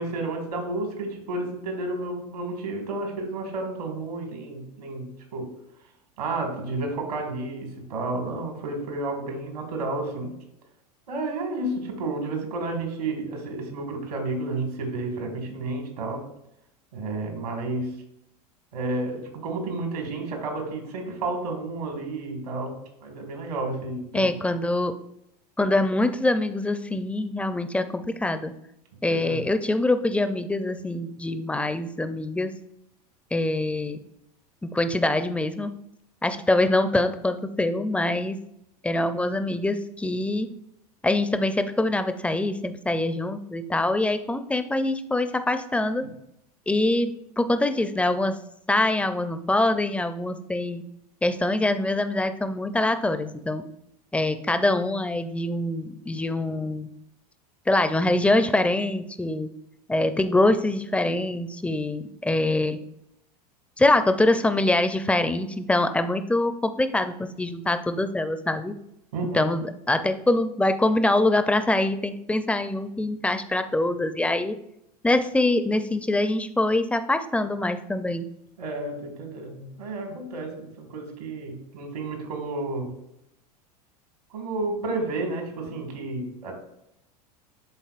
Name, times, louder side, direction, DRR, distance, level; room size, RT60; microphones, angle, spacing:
voice 1, 0.0-5.6 6.2-10.4 11.1-16.3 16.9-18.0 18.7-24.3 29.1-29.5 69.1-69.5 78.6-83.0 84.3-86.5, right 2 dB, 75° right, 3 dB, 2.0 m, -31 dB
voice 2, 24.1-24.9 25.6-28.5 29.0-32.6 33.3-34.0 34.7-35.7 36.2-38.4 38.8-40.5 41.0-46.1 46.7-48.4 48.7-50.8 51.2-53.6 54.1-56.9 57.7-59.5 59.9-62.8 63.8-68.8 69.3-74.6 75.0-78.3, left 2 dB, 5° left, 10 dB, 0.5 m, -24 dB
11.0 x 3.9 x 2.5 m, 0.80 s
hypercardioid pair, 85°, 20 cm